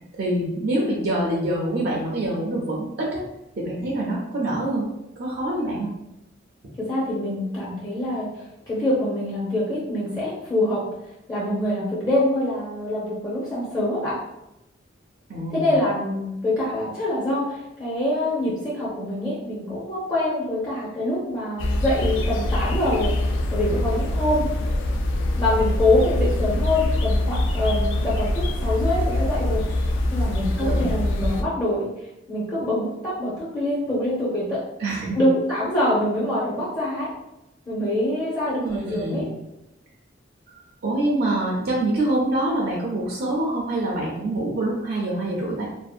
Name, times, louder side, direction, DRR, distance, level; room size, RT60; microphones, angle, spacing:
voice 1, 0.2-3.2 3.6-4.8 5.2-5.9 15.3-15.7 30.6-30.9 34.8-35.3 38.5-39.3 40.5-45.7, right 1 dB, 55° right, -3 dB, 0.5 m, -25 dB
voice 2, 6.8-8.3 8.7-10.8 11.3-14.2 15.5-24.6 25.4-31.9 32.3-34.6 35.1-37.1 37.7-39.3, left 1 dB, 20° left, -9 dB, 0.6 m, -25 dB
sound 1, 21.6-31.4, left 1 dB, 75° left, 0.3 m, -24 dB
2.6 x 2.0 x 2.4 m, 0.90 s
head